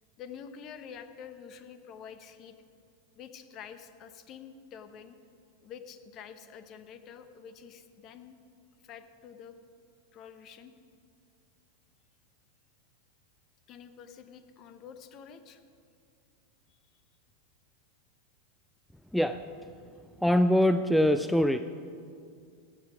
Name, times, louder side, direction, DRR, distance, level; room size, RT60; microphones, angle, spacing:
voice 1, 0.2-2.5 3.1-5.2 5.6-8.4 8.8-9.6 10.1-10.7 13.7-15.6 16.7-16.8, left 7 dB, 40° left, 10 dB, 0.9 m, -47 dB
voice 2, 19.1-19.5 20.2-21.6, equal, ahead, 10 dB, 0.3 m, -23 dB
15.5 x 7.9 x 5.1 m, 2.3 s
figure-of-eight pair, 90°, 0 cm